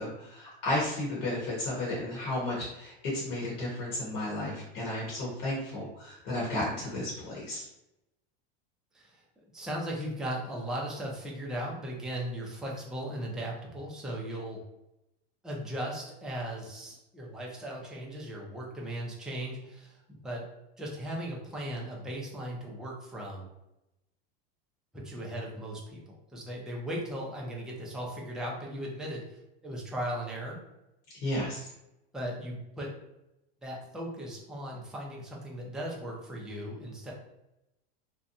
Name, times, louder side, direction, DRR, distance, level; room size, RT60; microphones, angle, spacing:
voice 1, 0.0-7.6 31.2-31.6, left 1 dB, 55° left, -5 dB, 1.0 m, -33 dB
voice 2, 9.5-14.6 15.4-20.4 20.8-23.5 24.9-29.2 29.6-30.6 32.1-32.9 33.6-37.1, right 1 dB, ahead, -3 dB, 0.4 m, -37 dB
2.7 x 2.2 x 2.5 m, 0.88 s
supercardioid pair, 130°, 31 cm